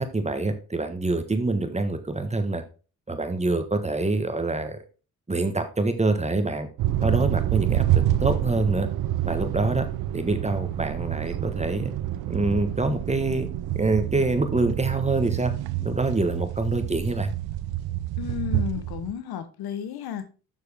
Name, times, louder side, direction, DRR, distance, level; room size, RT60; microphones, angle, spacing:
voice 1, 0.0-2.6 3.1-4.8 5.3-6.7 7.0-8.9 9.2-9.9 10.1-11.9 12.3-13.5 13.7-15.5 15.8-17.3, right 2 dB, 20° right, 1.3 m, -25 dB
sound 1, 6.8-19.1, right 13 dB, 85° right, 0.6 m, -28 dB
voice 2, 18.2-20.3, left 9 dB, 85° left, 1.0 m, -33 dB
7.3 x 6.2 x 3.5 m
cardioid pair, 70°, 36 cm